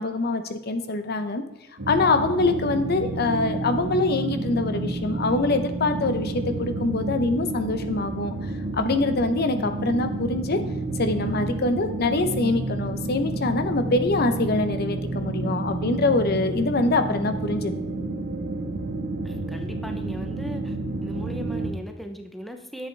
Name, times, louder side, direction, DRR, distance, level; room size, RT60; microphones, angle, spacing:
voice 1, 0.0-1.4 1.9-10.6 11.0-17.7, left 3 dB, 50° left, 8 dB, 0.7 m, -24 dB
sound 1, 1.8-21.7, right 2 dB, 75° right, 1.6 m, -30 dB
voice 2, 19.2-20.8 21.0-22.9, equal, ahead, 4 dB, 0.7 m, -38 dB
10.0 x 7.7 x 3.3 m, 0.99 s
head